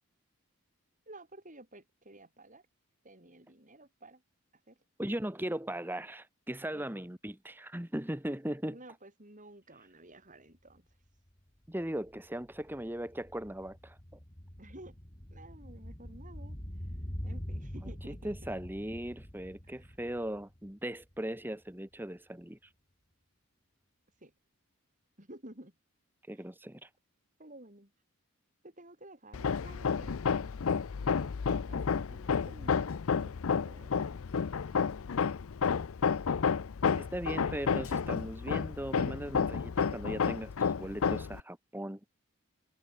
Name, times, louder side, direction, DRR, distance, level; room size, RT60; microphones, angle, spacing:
voice 1, 1.1-2.7 3.0-4.2 4.7-4.8 6.7-7.0 8.6-10.8 14.6-15.0 15.3-16.6 17.2-18.6 19.6-19.9 24.2-24.3 25.2-25.7 27.4-27.9 28.6-30.3 31.0-34.2 35.1-35.3, right 1 dB, 35° right, 6.1 m, -53 dB
voice 2, 5.0-8.8 11.7-14.0 17.8-17.9 18.2-22.6 26.3-26.9 37.0-42.0, right 1 dB, 10° right, 1.3 m, -38 dB
sound 1, 10.7-10.8 11.1-21.4 21.7-21.8, equal, 20° left, 2.9 m, -45 dB
Hammer, 29.3-41.4, left 6 dB, 65° left, 0.5 m, -31 dB
head